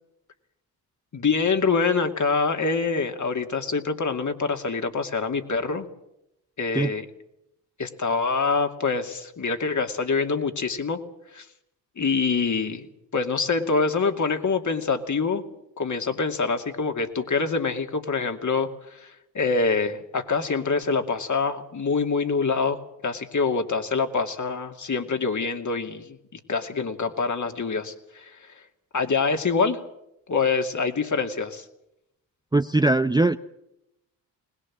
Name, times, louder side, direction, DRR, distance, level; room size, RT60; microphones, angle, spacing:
voice 1, 1.1-5.9 6.6-7.0 7.8-11.0 11.3-11.5 12.0-12.9 13.1-15.4 15.8-28.5 28.9-29.8 30.3-31.6, left 4 dB, 40° left, 5 dB, 2.6 m, -25 dB
voice 2, 32.5-33.4, right 2 dB, 10° right, 10 dB, 0.7 m, -20 dB
21.5 x 20.0 x 7.5 m, 0.84 s
hypercardioid pair, 45°, 45 cm